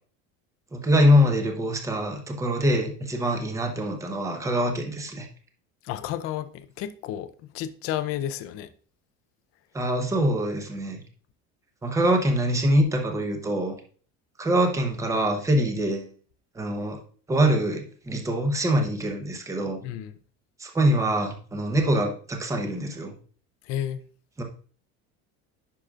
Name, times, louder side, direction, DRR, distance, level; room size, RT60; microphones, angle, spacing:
voice 1, 0.7-5.3 9.7-11.0 11.8-13.8 14.4-16.1 16.5-17.0 17.3-19.8 20.6-23.1 24.4-24.5, equal, 10° right, 0.8 m, -24 dB
voice 2, 5.8-8.7 19.8-20.1 23.6-24.0, left 11 dB, 40° left, 0.5 m, -32 dB
10.0 x 5.9 x 2.4 m
cardioid pair, 180°, 34 cm